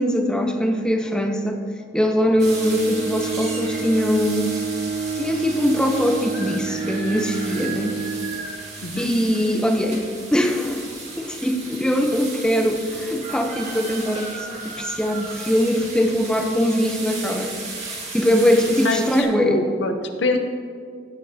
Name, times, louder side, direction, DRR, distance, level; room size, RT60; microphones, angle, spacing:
voice 1, 0.0-1.6 1.9-4.5 5.1-8.0 9.0-10.0 10.3-10.9 11.2-17.5 18.1-19.6, equal, 5° left, 3 dB, 0.8 m, -21 dB
Bowed string instrument, 2.3-9.0, right 5 dB, 70° right, 3.0 m, -30 dB
sound 1, 2.4-19.2, right 3 dB, 40° right, 2.3 m, -35 dB
voice 2, 8.8-9.1 18.8-20.4, left 2 dB, 85° left, 6 dB, 0.8 m, -25 dB
16.0 x 9.0 x 2.8 m, 2.1 s
head